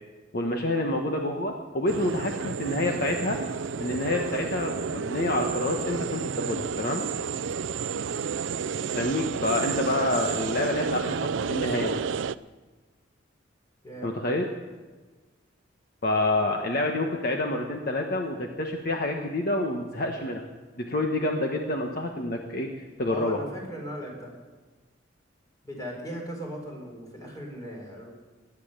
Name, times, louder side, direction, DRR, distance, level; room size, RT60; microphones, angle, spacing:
voice 1, 0.3-3.4 3.8-7.0 8.9-12.0 14.0-14.4 16.0-20.4 20.8-22.7 23.0-23.4, left 1 dB, 50° left, 2 dB, 1.3 m, -28 dB
sound 1, 1.9-12.3, right 6 dB, 80° right, 0.4 m, -31 dB
voice 2, 23.1-24.3 25.6-28.1, equal, 20° left, 0 dB, 4.3 m, -38 dB
18.0 x 11.0 x 6.7 m, 1.3 s
head